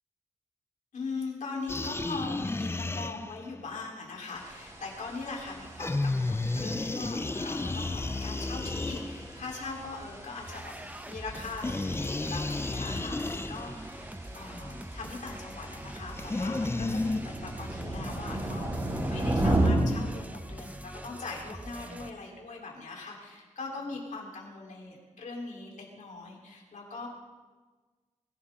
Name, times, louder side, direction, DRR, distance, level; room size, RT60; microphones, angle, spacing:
voice 1, 0.9-27.1, left 3 dB, 90° left, -2 dB, 3.9 m, -41 dB
sound 1, 1.7-3.6 5.8-9.5 11.6-13.9 16.1-17.2, left 2 dB, 20° left, 0.5 m, -32 dB
sound 2, 4.3-19.7, right 1 dB, 30° right, 5.1 m, -36 dB
sound 3, 10.4-22.1, right 1 dB, 10° right, 0.9 m, -43 dB
23.0 x 16.0 x 3.8 m, 1.3 s
wide cardioid pair, 105°, 13 cm